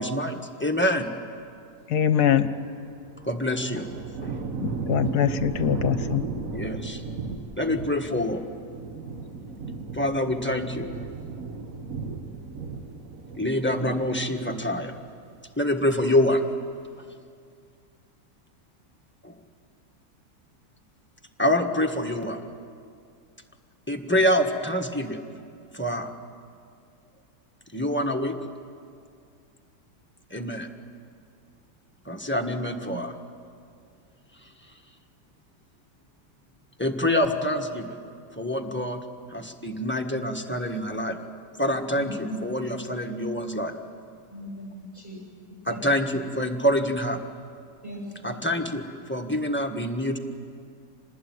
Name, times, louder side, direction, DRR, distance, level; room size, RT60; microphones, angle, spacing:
voice 1, 0.0-1.4 3.2-3.9 4.2-4.3 6.5-7.0 7.6-8.4 9.9-10.9 13.4-14.9 15.6-16.4 19.2-19.3 21.4-22.4 23.9-25.2 25.7-26.1 27.7-28.3 30.3-30.7 32.0-33.1 36.8-38.0 38.3-39.0 39.3-41.2 41.6-42.1 42.4-43.7 45.6-47.2 48.2-50.2, left 1 dB, 5° left, 2 dB, 1.3 m, -26 dB
voice 2, 1.9-2.5 4.6-6.2, left 10 dB, 70° left, 12 dB, 1.3 m, -23 dB
sound 1, 2.5-15.3 15.6-16.3, right 4 dB, 55° right, 1.4 m, -35 dB
voice 3, 42.0-42.4 44.3-45.2 45.5-45.8 47.8-48.4, equal, 10° right, -8 dB, 6.9 m, -37 dB
26.5 x 20.0 x 9.4 m, 2.3 s
omnidirectional pair, 1.9 m